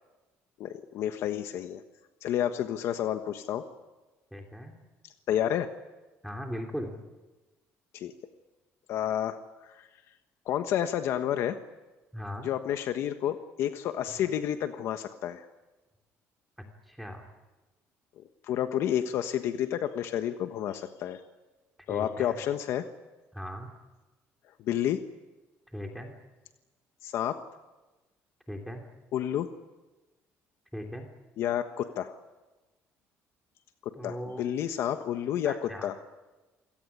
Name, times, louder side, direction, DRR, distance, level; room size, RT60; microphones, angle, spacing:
voice 1, 0.6-1.8 2.2-3.7 5.3-5.7 7.9-8.1 8.9-9.9 10.4-11.6 12.4-15.4 18.4-21.2 21.9-22.9 24.6-25.0 27.0-27.4 29.1-29.5 31.4-32.2 33.8-35.9, left 10 dB, 65° left, 8 dB, 1.3 m, -30 dB
voice 2, 4.3-4.7 6.2-6.9 12.1-12.5 16.6-17.2 21.9-22.4 23.3-23.7 25.7-26.1 28.5-28.8 30.7-31.1 33.9-34.4 35.4-35.9, equal, ahead, 2 dB, 3.0 m, -38 dB
28.0 x 17.5 x 9.9 m, 1.1 s
cardioid pair, 145°, 5 cm